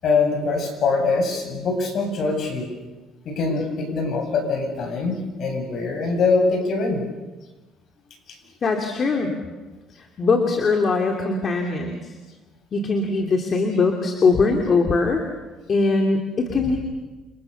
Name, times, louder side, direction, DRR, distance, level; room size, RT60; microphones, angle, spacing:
voice 1, 0.0-2.7 3.2-7.0 16.6-16.7, left 4 dB, 50° left, 4 dB, 7.9 m, -23 dB
voice 2, 8.6-9.4 10.2-12.1 12.7-15.2 15.7-16.8, left 3 dB, 35° left, 3 dB, 2.9 m, -21 dB
30.0 x 27.0 x 7.0 m, 1.2 s
cardioid pair, 130°, 0 cm